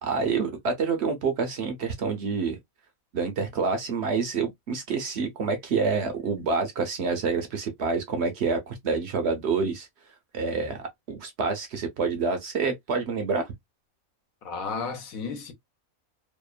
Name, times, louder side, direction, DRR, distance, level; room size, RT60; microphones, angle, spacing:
voice 1, 0.0-2.6 3.1-9.9 10.3-13.5, right 4 dB, 60° right, 0.7 m, -27 dB
voice 2, 14.4-15.5, left 5 dB, 75° left, 1.2 m, -33 dB
2.8 x 2.1 x 2.3 m
omnidirectional pair, 1.5 m